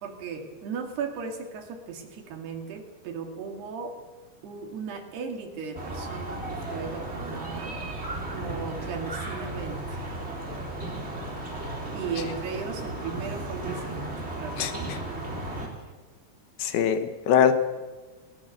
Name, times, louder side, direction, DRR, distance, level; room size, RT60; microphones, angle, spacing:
voice 1, 0.0-3.9 4.4-7.7 8.3-10.0 11.9-15.8, right 5 dB, 80° right, 4 dB, 4.5 m, -37 dB
sound 1, 5.7-15.7, right 2 dB, 15° right, 3.9 m, -35 dB
voice 2, 14.5-15.0 16.6-17.5, left 8 dB, 70° left, 9 dB, 3.1 m, -23 dB
21.0 x 19.0 x 8.0 m, 1.2 s
omnidirectional pair, 4.7 m